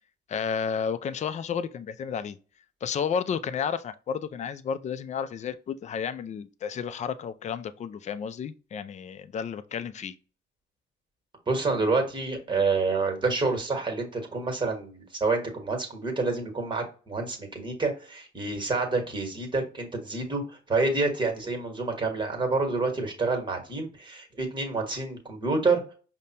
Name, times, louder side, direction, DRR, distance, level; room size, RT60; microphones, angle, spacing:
voice 1, 0.3-2.4 2.8-10.2, left 7 dB, 35° left, 0.4 m, -32 dB
voice 2, 11.5-25.8, right 3 dB, 25° right, 1.3 m, -28 dB
5.2 x 2.2 x 2.8 m
cardioid pair, 90°, 20 cm